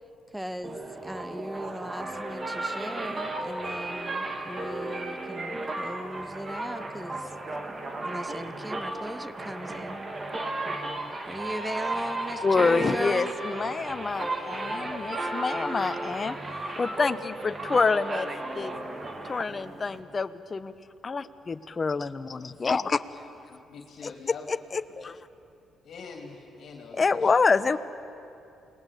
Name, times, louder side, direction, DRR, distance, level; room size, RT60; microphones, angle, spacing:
voice 1, 0.3-7.3 8.0-10.0 11.3-13.3, equal, 5° right, 14 dB, 1.0 m, -38 dB
sound 1, 0.6-20.0, right 2 dB, 30° right, 2.2 m, -34 dB
voice 2, 12.4-16.4 16.8-18.7 19.2-20.7 21.0-23.2 24.0-24.1 24.5-25.2 26.9-27.8, left 4 dB, 35° left, 13 dB, 1.0 m, -27 dB
voice 3, 23.5-24.4 25.8-27.5, left 5 dB, 60° left, 3 dB, 2.8 m, -44 dB
28.5 x 20.5 x 8.4 m, 2.7 s
cardioid pair, 90°, 0 cm